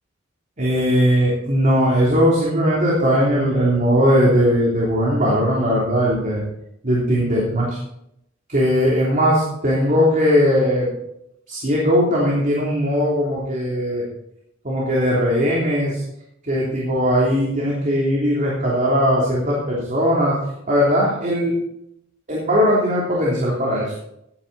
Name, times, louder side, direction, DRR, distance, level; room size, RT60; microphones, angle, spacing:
voice 1, 0.6-6.4 6.8-7.8 8.5-10.9 11.5-14.0 14.6-16.0 16.4-20.3 20.7-21.5 22.3-23.9, equal, 40° right, -5 dB, 3.2 m, -19 dB
17.0 x 9.7 x 4.1 m, 0.80 s
head